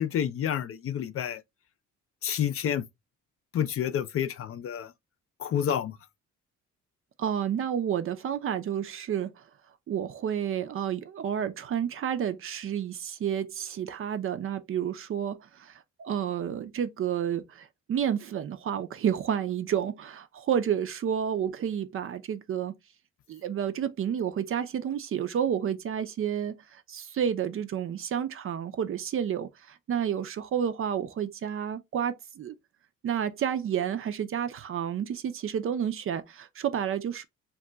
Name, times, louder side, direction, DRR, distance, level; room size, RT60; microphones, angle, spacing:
voice 1, 0.0-1.4 2.2-2.8 3.5-4.9 5.4-6.0, left 9 dB, 50° left, 0.4 m, -29 dB
voice 2, 7.2-9.4 9.9-22.7 23.3-32.5 33.0-37.2, right 9 dB, 45° right, 0.5 m, -30 dB
2.3 x 2.2 x 3.7 m
cardioid pair, 90°, 30 cm